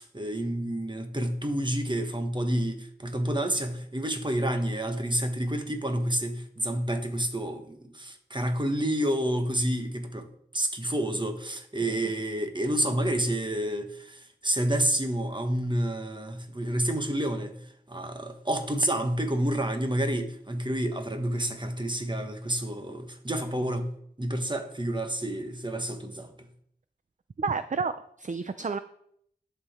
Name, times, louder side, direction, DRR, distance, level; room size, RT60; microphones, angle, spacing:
voice 1, 0.0-23.9 24.2-26.5, right 1 dB, 25° right, 1.3 m, -29 dB
voice 2, 27.4-28.8, right 4 dB, 45° right, 0.4 m, -31 dB
11.0 x 6.9 x 4.3 m
wide cardioid pair, 55°, 18 cm